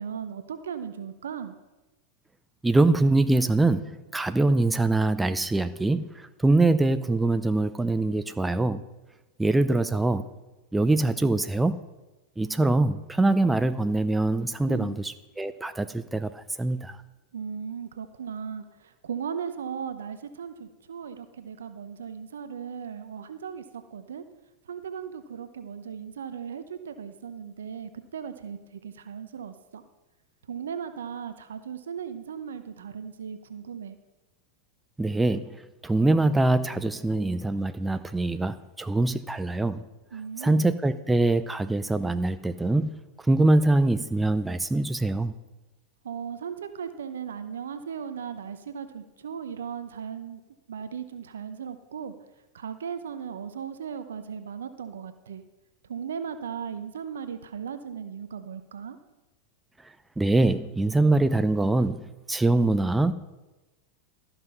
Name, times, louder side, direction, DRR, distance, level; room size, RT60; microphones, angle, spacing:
voice 1, 0.0-1.5 14.7-15.0 17.3-24.2 24.7-29.8 30.5-34.0 40.1-40.7 46.0-50.4 50.7-52.1 52.5-55.4 55.9-59.0, right 7 dB, 80° right, 10 dB, 0.7 m, -37 dB
voice 2, 2.6-8.8 9.4-10.3 10.7-11.8 12.4-17.0 35.0-39.8 40.4-42.9 43.3-45.3 60.2-63.1, right 2 dB, 10° right, 12 dB, 0.5 m, -24 dB
13.0 x 6.0 x 5.5 m, 1.1 s
hypercardioid pair, 100°, 0 cm